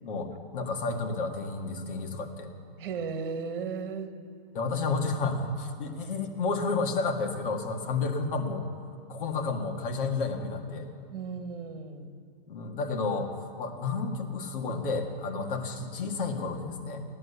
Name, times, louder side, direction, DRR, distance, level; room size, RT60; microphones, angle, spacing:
voice 1, 0.0-2.5 4.5-8.7 9.1-10.9 12.5-17.0, left 4 dB, 60° left, 3 dB, 1.9 m, -31 dB
voice 2, 2.8-4.1 11.1-12.2, right 5 dB, 60° right, 7 dB, 1.6 m, -35 dB
16.0 x 11.0 x 6.9 m, 2.5 s
supercardioid pair, 165°, 30 cm